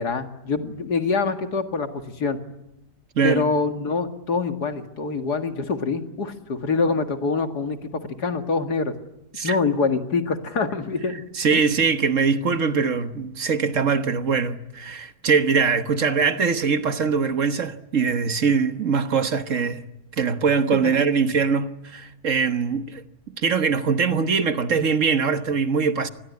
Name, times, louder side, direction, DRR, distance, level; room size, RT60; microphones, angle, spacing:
voice 1, 0.0-2.4 3.2-8.9 9.4-11.2 11.5-11.6 20.8-20.9, left 4 dB, 75° left, 2.6 m, -25 dB
voice 2, 3.1-3.5 9.4-9.6 11.3-19.8 20.2-23.0 23.4-26.1, right 5 dB, 50° right, 1.5 m, -22 dB
27.0 x 20.5 x 9.6 m
omnidirectional pair, 1.7 m